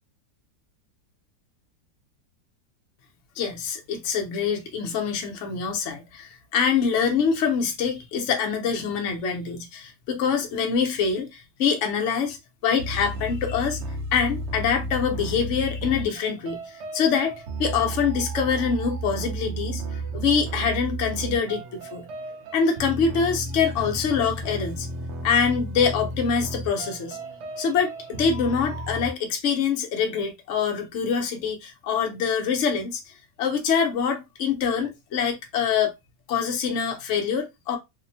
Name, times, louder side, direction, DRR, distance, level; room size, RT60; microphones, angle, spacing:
voice 1, 3.4-12.4 12.6-13.8 14.1-16.6 16.9-22.1 22.5-24.9 25.2-27.2 27.6-33.1 33.4-35.9 36.3-37.8, left 6 dB, 65° left, 0.8 m, -25 dB
sound 1, 12.8-29.1, right 2 dB, 90° right, 0.5 m, -33 dB
2.8 x 2.0 x 2.6 m
omnidirectional pair, 1.7 m